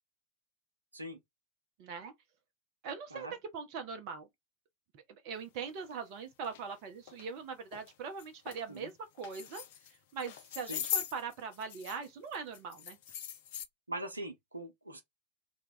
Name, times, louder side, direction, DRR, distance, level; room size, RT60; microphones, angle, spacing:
voice 1, 1.8-2.1 2.8-3.3 3.5-4.3 4.9-8.9 9.2-13.0, right 5 dB, 45° right, 0.5 m, -41 dB
sound 1, 5.8-5.9 6.4-6.6 7.1-7.3 7.7-7.9 8.2-8.6 9.2-9.9 10.2-12.1 12.3-13.7, left 9 dB, 50° left, 0.4 m, -40 dB
voice 2, 13.9-15.0, right 1 dB, 80° right, 0.7 m, -42 dB
2.3 x 2.1 x 3.8 m
figure-of-eight pair, 90°, 0 cm